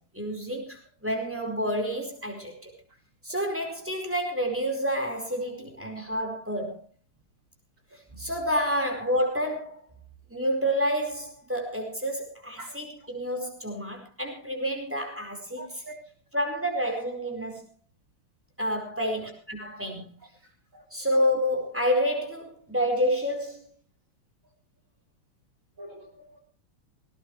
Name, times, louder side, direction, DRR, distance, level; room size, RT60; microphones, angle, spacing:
voice 1, 0.1-2.7 3.2-6.8 8.2-9.8 10.3-15.8 16.3-17.6 18.6-20.1 20.9-23.7, equal, 5° right, 2 dB, 4.6 m, -29 dB
voice 2, 15.6-16.0 20.7-20.8 25.8-26.4, right 1 dB, 35° right, 2 dB, 4.1 m, -44 dB
19.0 x 18.5 x 3.2 m, 0.33 s
omnidirectional pair, 2.4 m